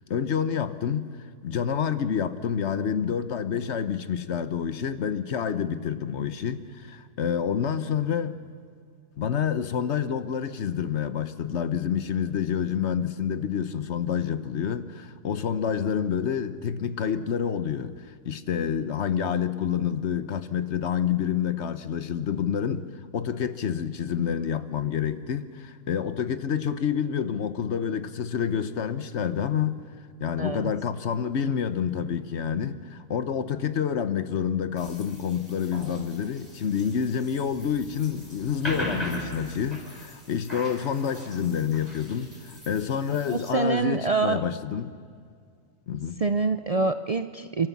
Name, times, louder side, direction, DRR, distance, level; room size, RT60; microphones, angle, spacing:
voice 1, 0.1-1.1 1.4-8.4 9.2-22.9 23.1-29.8 30.2-44.9 45.9-46.2, left 8 dB, 70° left, 1.1 m, -28 dB
voice 2, 30.4-30.7 43.3-44.4 46.2-47.7, right 4 dB, 45° right, 0.5 m, -26 dB
sound 1, 34.8-43.5, equal, 30° left, 6.2 m, -39 dB
29.0 x 14.0 x 7.0 m
omnidirectional pair, 1.2 m